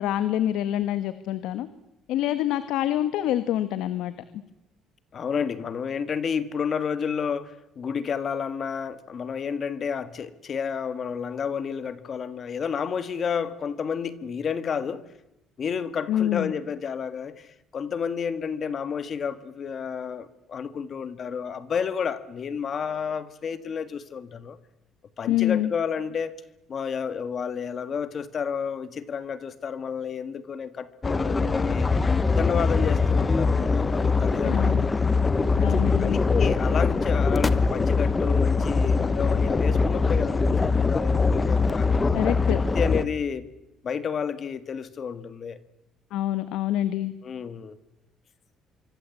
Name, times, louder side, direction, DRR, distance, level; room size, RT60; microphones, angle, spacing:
voice 1, 0.0-1.7 2.1-4.4 16.1-16.5 25.3-25.7 34.4-34.8 35.6-36.2 42.1-42.6 46.1-47.1, left 12 dB, 80° left, 1.5 m, -26 dB
voice 2, 5.1-15.1 15.6-24.6 25.2-26.4 26.7-31.9 32.4-34.9 36.0-41.9 42.6-43.5 43.8-45.6 47.2-47.8, left 6 dB, 35° left, 1.6 m, -31 dB
sound 1, 31.0-43.0, left 4 dB, 15° left, 1.0 m, -22 dB
26.0 x 25.0 x 8.4 m
cardioid pair, 170°, 0 cm